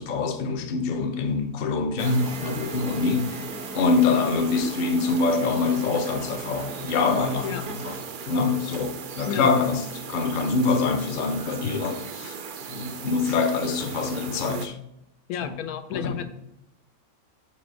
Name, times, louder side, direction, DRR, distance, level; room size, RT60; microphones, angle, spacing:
voice 1, 0.0-3.5 3.7-8.0 8.3-12.4 12.7-14.8 15.4-15.6 15.9-16.2, left 4 dB, 50° left, 0.6 m, -25 dB
sound 1, 2.0-8.0, right 1 dB, 5° right, 0.5 m, -41 dB
sound 2, 2.0-14.7, right 6 dB, 80° right, 0.4 m, -38 dB
voice 2, 15.3-16.2, left 9 dB, 85° left, 1.2 m, -31 dB
6.0 x 4.1 x 6.2 m
omnidirectional pair, 1.6 m